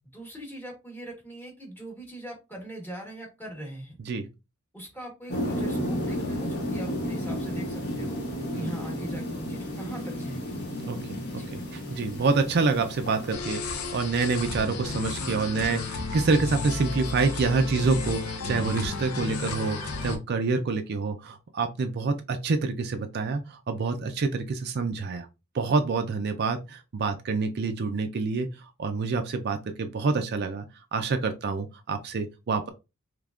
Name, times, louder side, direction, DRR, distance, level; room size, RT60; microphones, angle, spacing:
voice 1, 0.1-4.0 4.7-8.2 8.5-10.5 11.4-11.5, right 1 dB, 10° left, 0 dB, 1.1 m, -40 dB
sound 1, 5.3-13.3, equal, 50° left, 1.0 m, -32 dB
voice 2, 10.9-25.3 25.5-28.5 28.8-30.7 30.9-32.7, right 4 dB, 50° right, 6 dB, 0.4 m, -27 dB
sound 2, 13.3-20.2, left 3 dB, 80° left, 0.7 m, -33 dB
3.5 x 3.2 x 2.4 m, 0.26 s
head